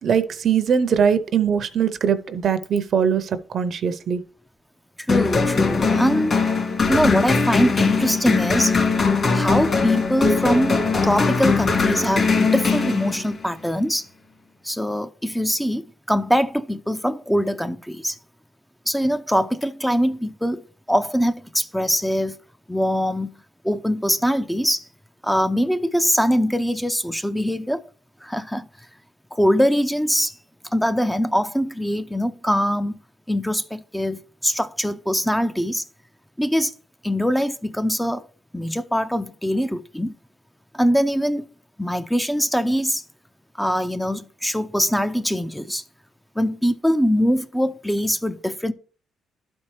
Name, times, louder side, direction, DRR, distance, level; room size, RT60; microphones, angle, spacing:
voice 1, 0.0-4.2, right 7 dB, 60° right, 0.6 m, -21 dB
voice 2, 5.0-6.4 6.9-8.8 9.3-14.1 14.6-18.2 18.9-22.4 22.7-24.9 25.2-27.9 28.2-28.7 29.3-30.4 30.7-33.0 33.3-35.8 36.4-36.7 37.0-38.2 38.5-40.2 40.7-41.5 41.8-43.0 43.6-45.8 46.4-48.7, equal, 5° left, 0.4 m, -22 dB
sound 1, 5.1-13.5, left 4 dB, 45° left, 2.3 m, -20 dB
11.5 x 4.4 x 3.2 m
cardioid pair, 90°, 0 cm